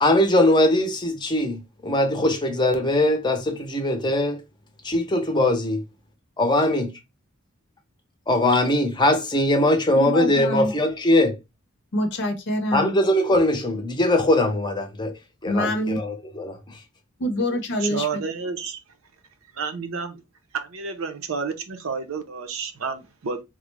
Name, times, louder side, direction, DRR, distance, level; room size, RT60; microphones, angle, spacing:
voice 1, 0.0-4.4 4.8-5.8 6.4-6.9 8.3-11.4 12.7-15.1 15.4-16.8, left 1 dB, 20° left, 0.6 m, -21 dB
voice 2, 9.9-10.7 11.9-12.9 15.5-16.0 17.2-18.1, equal, 60° left, 0.6 m, -25 dB
voice 3, 17.8-18.8 19.5-20.2 20.6-23.4, right 5 dB, 80° right, 0.6 m, -30 dB
3.6 x 2.1 x 3.2 m
head